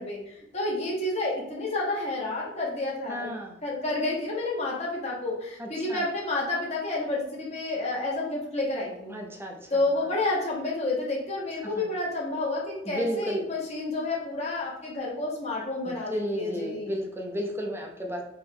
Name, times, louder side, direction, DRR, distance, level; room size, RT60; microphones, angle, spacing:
voice 1, 0.0-3.3 3.6-9.2 9.7-16.9, left 2 dB, 35° left, -4 dB, 1.1 m, -30 dB
voice 2, 3.1-3.6 5.6-6.1 9.1-9.7 11.7-11.9 12.9-13.5 16.1-18.2, equal, 15° right, 2 dB, 0.6 m, -33 dB
4.3 x 3.1 x 3.7 m, 0.81 s
head